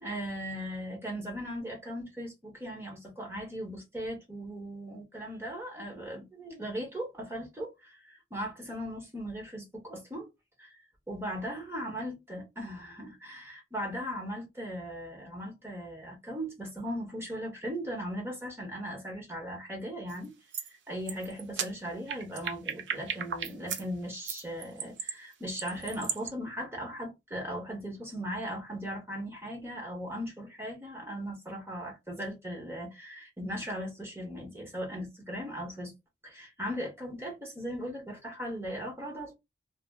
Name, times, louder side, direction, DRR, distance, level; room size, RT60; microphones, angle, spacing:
voice 1, 0.0-10.3 10.6-10.7 11.1-20.3 20.9-35.9 36.2-39.3, equal, 15° right, 0.9 m, -38 dB
sound 1, 20.1-20.3 20.5-20.7 21.1-23.8 24.3-26.3, right 7 dB, 80° right, 0.6 m, -36 dB
2.4 x 2.0 x 3.4 m
head